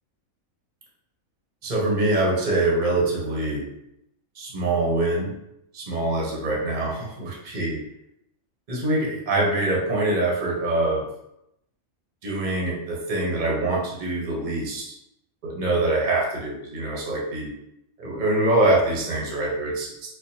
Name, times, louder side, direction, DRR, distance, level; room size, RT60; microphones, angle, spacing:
voice 1, 1.6-3.7 4.4-5.3 5.7-7.8 8.7-11.1 12.2-14.9 15.4-17.5 18.0-19.9, right 2 dB, 40° right, -2 dB, 0.9 m, -24 dB
4.3 x 2.3 x 2.7 m, 0.80 s
omnidirectional pair, 1.4 m